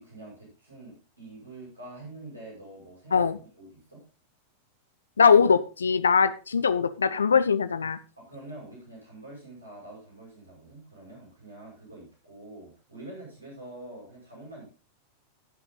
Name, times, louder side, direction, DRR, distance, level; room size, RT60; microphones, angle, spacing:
voice 1, 0.0-3.2 3.5-4.0 8.2-14.7, right 2 dB, 80° right, 5.9 m, -45 dB
voice 2, 5.2-8.0, left 6 dB, 70° left, 0.5 m, -21 dB
16.5 x 5.9 x 3.9 m
figure-of-eight pair, 90°, 0 cm